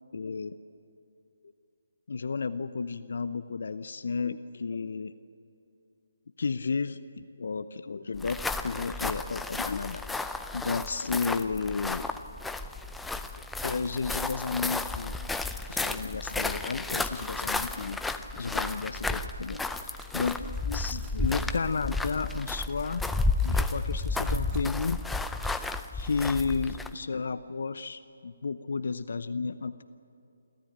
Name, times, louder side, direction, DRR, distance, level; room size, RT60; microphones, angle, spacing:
voice 1, 0.1-0.5 2.1-5.1 6.4-10.0 10.5-12.1 13.6-15.1 15.7-18.0 18.3-23.0 23.4-25.0 25.9-29.8, left 4 dB, 60° left, 12 dB, 0.7 m, -32 dB
sound 1, 8.1-27.0, left 3 dB, 5° left, 0.5 m, -32 dB
sound 2, 19.2-25.8, right 5 dB, 25° right, 2.5 m, -56 dB
28.0 x 13.5 x 8.8 m, 2.7 s
figure-of-eight pair, 150°, 0 cm